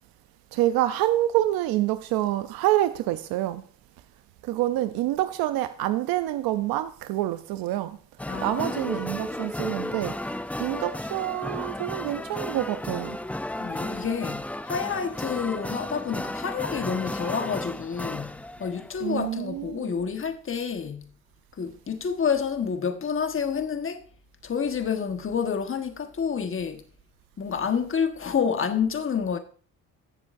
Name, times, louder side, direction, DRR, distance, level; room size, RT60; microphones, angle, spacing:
voice 1, 0.5-3.6 4.4-8.0 8.4-13.2 19.0-19.9, right 14 dB, 85° right, 0.6 m, -27 dB
sound 1, 8.2-19.3, left 1 dB, 5° left, 0.4 m, -34 dB
voice 2, 8.3-9.0 13.5-21.1 21.5-24.0 24.4-26.8 27.4-29.4, left 6 dB, 35° left, 1.4 m, -29 dB
16.0 x 7.0 x 2.6 m
cardioid pair, 80°, 35 cm